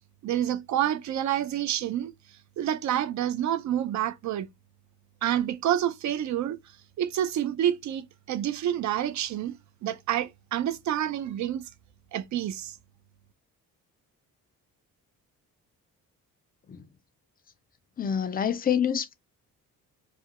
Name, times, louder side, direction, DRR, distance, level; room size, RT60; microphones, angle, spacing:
voice 1, 0.2-2.1 2.6-4.5 5.2-6.6 7.0-9.6 9.8-11.6 12.1-12.8, right 11 dB, 55° right, 0.4 m, -28 dB
voice 2, 18.0-19.1, left 8 dB, 25° left, 0.4 m, -27 dB
2.4 x 2.1 x 2.7 m
cardioid pair, 105°, 34 cm